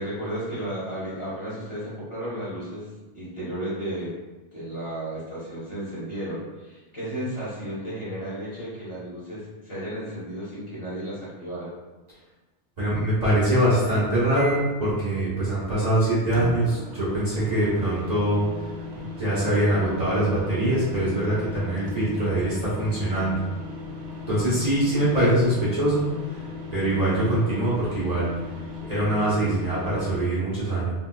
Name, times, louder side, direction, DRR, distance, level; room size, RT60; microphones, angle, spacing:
voice 1, 0.0-2.9 3.1-4.1 4.5-11.7, right 1 dB, 25° left, -10 dB, 1.3 m, -33 dB
voice 2, 12.8-18.4 18.9-23.3 24.3-26.4 26.7-28.3 28.8-30.9, right 1 dB, 40° right, -10 dB, 1.1 m, -23 dB
sound 1, 14.3-14.8 16.3-30.2, left 3 dB, 90° right, 1.1 m, -37 dB
3.4 x 2.8 x 2.3 m, 1.2 s
omnidirectional pair, 1.1 m